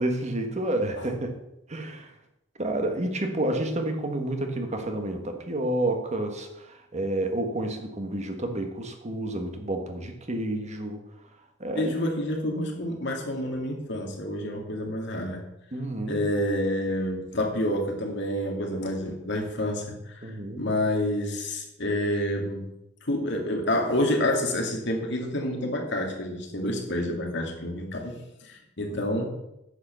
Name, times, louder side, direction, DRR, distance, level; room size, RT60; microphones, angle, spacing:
voice 1, 0.0-1.3 1.7-2.1 2.6-11.0 11.6-11.9 15.7-16.2 20.2-20.7 28.9-29.3, right 1 dB, 35° right, 5 dB, 1.4 m, -30 dB
voice 2, 11.8-15.5 16.1-20.3 20.6-22.7 23.0-29.3, left 1 dB, 65° left, 1 dB, 2.3 m, -28 dB
9.7 x 6.7 x 6.7 m, 0.88 s
head